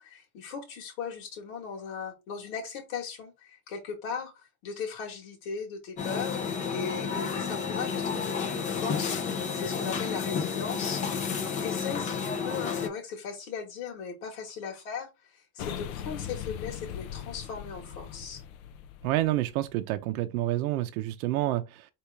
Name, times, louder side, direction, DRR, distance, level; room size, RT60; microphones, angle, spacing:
voice 1, 0.0-18.4, left 6 dB, 75° left, 1.7 m, -38 dB
sound 1, 6.0-12.9, left 6 dB, 20° left, 0.4 m, -31 dB
sound 2, 15.6-19.8, left 9 dB, 90° left, 0.7 m, -40 dB
voice 2, 19.0-21.9, right 15 dB, 85° right, 0.6 m, -28 dB
4.6 x 3.0 x 3.3 m
supercardioid pair, 150°, 41 cm